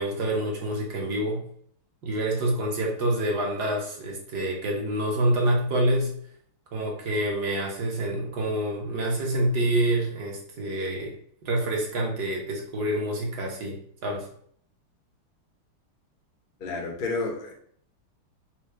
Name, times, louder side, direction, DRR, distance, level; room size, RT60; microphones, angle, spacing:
voice 1, 0.0-1.4 2.0-6.1 6.7-11.2 11.4-14.2, right 1 dB, 60° right, -1 dB, 1.2 m, -27 dB
voice 2, 16.6-17.5, left 3 dB, 60° left, 0 dB, 0.5 m, -30 dB
4.4 x 2.2 x 4.6 m, 0.62 s
omnidirectional pair, 2.4 m